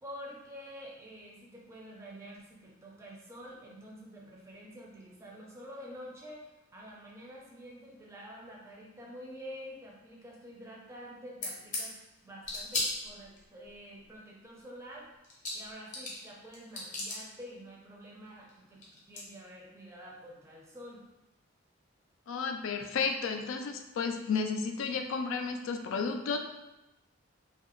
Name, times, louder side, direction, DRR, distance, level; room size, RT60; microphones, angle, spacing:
voice 1, 0.0-12.0 12.2-18.8 19.1-21.0, equal, 15° right, -3 dB, 0.4 m, -48 dB
sound 1, 11.4-11.9 12.4-13.4 14.9-15.0 15.2-16.3 16.5-17.2 18.5-18.6 18.8-19.2, left 2 dB, 35° left, 0.7 m, -35 dB
voice 2, 22.3-26.4, left 5 dB, 70° left, 5 dB, 0.3 m, -32 dB
2.7 x 2.4 x 3.0 m, 0.96 s
head